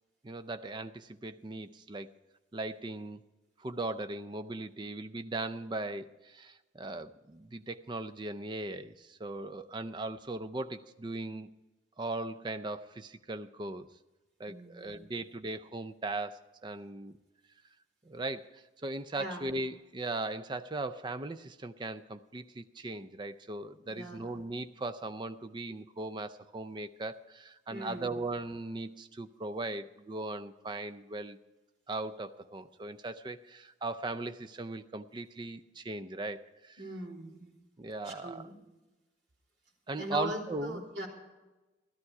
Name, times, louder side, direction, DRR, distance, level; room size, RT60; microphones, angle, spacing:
voice 1, 0.2-2.1 2.5-3.2 3.6-11.5 12.0-13.9 14.4-17.2 18.1-31.4 31.9-36.8 37.8-38.5 39.9-40.8, right 2 dB, 25° right, 11 dB, 0.4 m, -38 dB
voice 2, 14.4-15.1 19.1-19.4 23.9-24.4 27.7-28.2 36.8-37.5 38.0-38.5 40.0-41.1, equal, 65° right, -1 dB, 3.4 m, -41 dB
14.0 x 13.0 x 4.7 m, 1.1 s
head